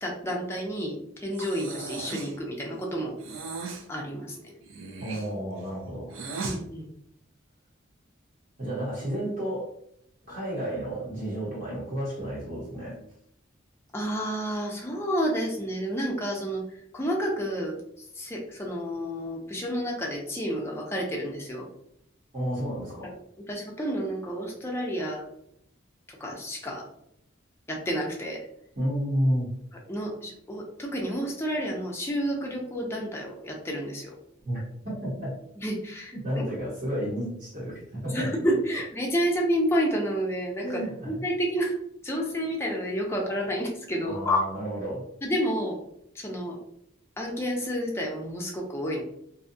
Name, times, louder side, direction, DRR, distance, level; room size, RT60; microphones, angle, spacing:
voice 1, 0.0-3.1 3.9-4.5 6.4-6.9 13.9-16.6 16.9-21.7 23.5-25.2 26.1-26.9 27.7-28.4 29.9-34.2 35.6-36.1 38.1-41.8 42.0-44.4 45.2-45.8 46.1-46.6 47.2-49.0, equal, 15° left, -1 dB, 0.4 m, -30 dB
Breathing, 1.3-2.4 3.2-3.9 4.6-6.6, right 4 dB, 90° right, 0.5 m, -37 dB
voice 2, 5.0-6.2 8.6-9.7 10.3-13.0 22.3-23.1 28.8-29.5 34.4-34.6 34.8-35.4 36.1-37.7 38.0-38.3 40.6-41.2 44.0-45.1, equal, 40° right, -8 dB, 0.9 m, -31 dB
2.6 x 2.2 x 2.6 m, 0.74 s
head